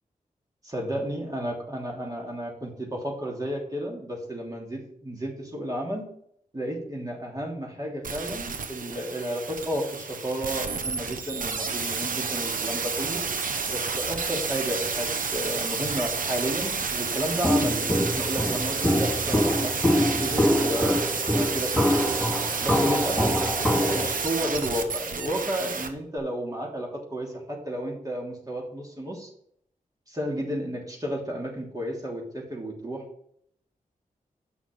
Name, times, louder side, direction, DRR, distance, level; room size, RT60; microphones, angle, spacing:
voice 1, 0.6-6.0 6.5-13.2 13.7-21.0 21.3-22.2 22.6-23.3 23.6-29.3 30.1-33.0, equal, 25° right, -2 dB, 3.0 m, -32 dB
sound 1, 8.0-25.9 26.2-26.3, right 5 dB, 70° right, 1.0 m, -30 dB
Walk footsteps, 17.4-24.1, equal, 10° right, 2.3 m, -24 dB
8.2 x 6.1 x 5.3 m, 0.67 s
cardioid pair, 60°, 14 cm